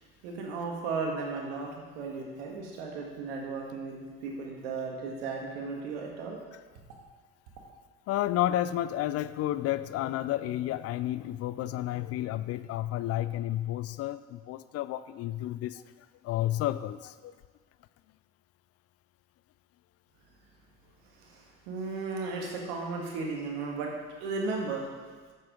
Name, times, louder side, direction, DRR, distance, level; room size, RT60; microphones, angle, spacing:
voice 1, 0.2-6.4 21.1-23.9 24.2-25.0, right 4 dB, 80° right, 0 dB, 1.7 m, -35 dB
voice 2, 8.1-15.8 16.2-17.3, left 13 dB, 55° left, 15 dB, 0.4 m, -31 dB
9.0 x 7.3 x 3.8 m, 1.4 s
hypercardioid pair, 65°, 30 cm